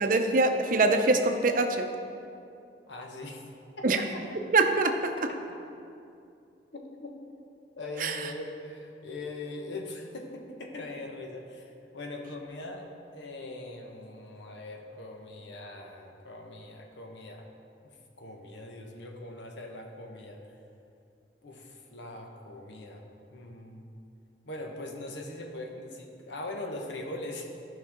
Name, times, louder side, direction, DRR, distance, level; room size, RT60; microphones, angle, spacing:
voice 1, 0.0-1.8 3.8-4.0 4.5-4.9 8.0-8.2, right 3 dB, 45° right, 5 dB, 0.6 m, -23 dB
voice 2, 2.9-3.4 3.8-4.4 5.5-5.6 6.7-7.1 7.8-12.9 13.1-17.5 17.8-20.4 21.4-23.0 23.3-23.9 24.4-27.5, left 2 dB, 80° left, 1 dB, 1.1 m, -41 dB
13.0 x 5.6 x 3.6 m, 2.6 s
head